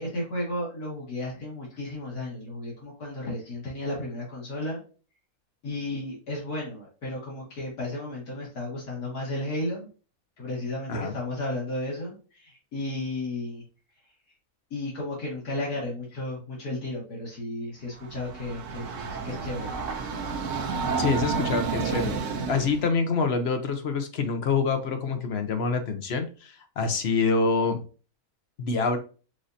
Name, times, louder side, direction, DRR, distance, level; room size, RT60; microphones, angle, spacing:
voice 1, 0.0-4.8 5.6-9.9 10.4-13.6 14.7-19.7, left 1 dB, 85° left, -5 dB, 2.4 m, -33 dB
Train, 18.0-22.9, right 5 dB, 60° right, 1.1 m, -30 dB
voice 2, 21.0-22.2 22.5-27.8 28.6-29.0, left 4 dB, 55° left, 7 dB, 0.9 m, -26 dB
6.4 x 2.6 x 2.6 m, 0.36 s
omnidirectional pair, 1.6 m